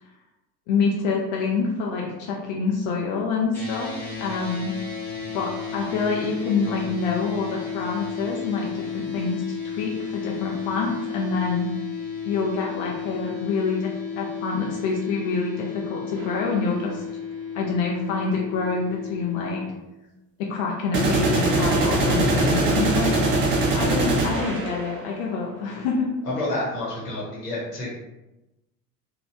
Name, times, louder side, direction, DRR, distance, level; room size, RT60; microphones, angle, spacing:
voice 1, 0.7-4.8 5.3-11.7 12.2-17.0 17.5-19.6 20.4-23.2 23.7-26.1, left 4 dB, 50° left, -1 dB, 0.6 m, -27 dB
sound 1, 3.5-19.6, left 6 dB, 5° left, 0.9 m, -33 dB
sound 2, 16.2-16.3 20.9-25.1, right 2 dB, 25° right, 0.5 m, -22 dB
voice 2, 26.2-27.9, left 2 dB, 75° left, -5 dB, 1.1 m, -29 dB
2.9 x 2.4 x 2.3 m, 0.97 s
figure-of-eight pair, 70°, 48 cm